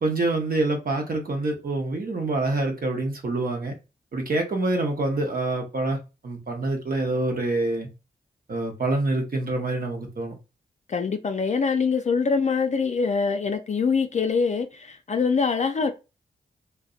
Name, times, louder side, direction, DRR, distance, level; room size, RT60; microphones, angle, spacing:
voice 1, 0.0-3.7 4.1-6.0 6.2-7.9 8.5-10.3, right 2 dB, 55° right, 0.8 m, -26 dB
voice 2, 10.9-15.9, left 5 dB, 40° left, 0.4 m, -24 dB
2.5 x 2.0 x 2.4 m
supercardioid pair, 40°, 18 cm